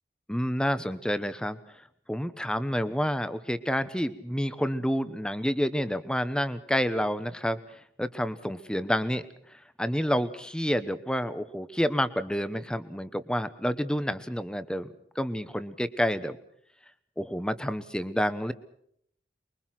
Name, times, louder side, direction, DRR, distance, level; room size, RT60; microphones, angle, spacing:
voice 1, 0.3-14.9 15.1-16.4 17.2-18.5, equal, 5° left, 12 dB, 0.9 m, -29 dB
24.5 x 22.5 x 6.0 m, 0.71 s
head